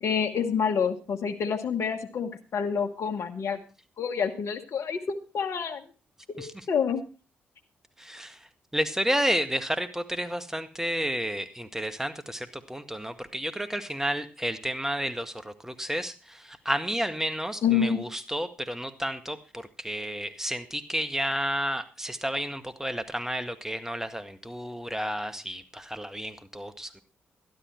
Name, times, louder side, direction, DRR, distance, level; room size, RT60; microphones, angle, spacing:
voice 1, 0.0-3.6 4.0-5.8 6.3-7.0 17.6-18.0, left 6 dB, 65° left, 4 dB, 1.4 m, -28 dB
voice 2, 8.0-8.4 8.7-27.0, equal, 10° right, 10 dB, 1.9 m, -31 dB
12.5 x 12.0 x 4.6 m, 0.33 s
hypercardioid pair, 40°, 5 cm